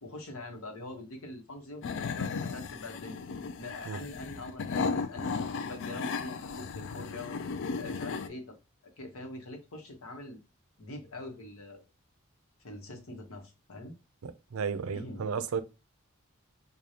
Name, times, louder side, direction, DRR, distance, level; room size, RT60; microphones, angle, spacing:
voice 1, 0.0-3.2 3.6-7.4 7.8-8.6 8.8-10.4 10.8-11.9 12.6-13.9 14.9-15.2, left 2 dB, 85° left, 1.0 m, -44 dB
sound 1, 1.8-8.3, left 5 dB, 60° left, 0.4 m, -35 dB
voice 2, 14.2-15.6, right 6 dB, 80° right, 0.4 m, -33 dB
4.8 x 2.3 x 2.7 m
head